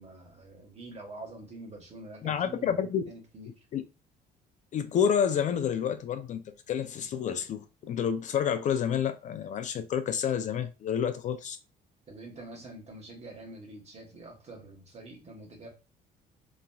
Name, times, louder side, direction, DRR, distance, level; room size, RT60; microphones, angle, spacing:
voice 1, 0.0-3.6 12.1-15.7, right 2 dB, 40° right, 1.3 m, -46 dB
voice 2, 2.2-3.0 3.7-3.8 4.7-11.6, left 8 dB, 45° left, 0.4 m, -29 dB
2.9 x 2.6 x 2.2 m
cardioid pair, 110°, 17 cm